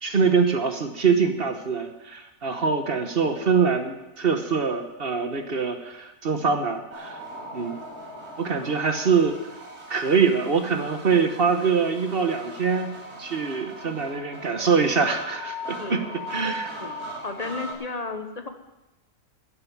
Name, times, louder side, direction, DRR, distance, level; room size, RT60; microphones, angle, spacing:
voice 1, 0.0-7.2 7.5-7.8 8.4-9.4 9.9-12.9 13.2-16.0 16.3-16.7, right 5 dB, 40° right, 6 dB, 1.2 m, -24 dB
sound 1, 6.9-17.7, equal, 70° right, 3.0 m, -39 dB
voice 2, 15.8-16.2 16.8-16.9 17.2-18.5, left 3 dB, 30° left, 7 dB, 1.0 m, -33 dB
12.0 x 8.2 x 9.5 m, 1.0 s
omnidirectional pair, 1.6 m